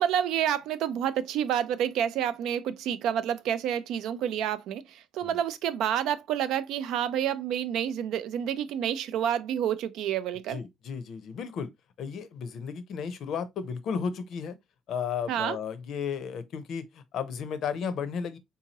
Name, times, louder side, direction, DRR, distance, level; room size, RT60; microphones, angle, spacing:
voice 1, 0.0-10.6 15.3-15.6, right 9 dB, 70° right, 0.4 m, -29 dB
voice 2, 10.5-11.7 12.0-14.6 14.9-18.4, left 6 dB, 55° left, 0.6 m, -34 dB
3.6 x 2.8 x 2.8 m
cardioid pair, 150°, 0 cm